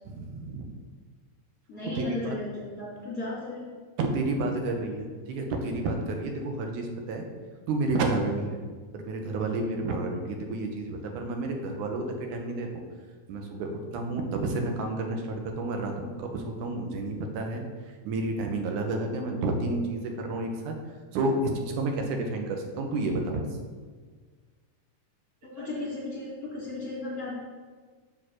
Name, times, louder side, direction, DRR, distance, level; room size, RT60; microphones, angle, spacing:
voice 1, 0.1-0.7 2.0-2.3 4.0-7.3 7.7-8.6 8.9-12.7 13.3-13.7 13.9-17.6 18.1-20.8 21.1-23.5 25.6-25.7, right 2 dB, 85° right, 3 dB, 2.4 m, -30 dB
voice 2, 1.7-3.6 25.4-27.3, left 2 dB, 30° left, -7 dB, 2.8 m, -35 dB
7.2 x 4.4 x 6.1 m, 1.5 s
omnidirectional pair, 3.4 m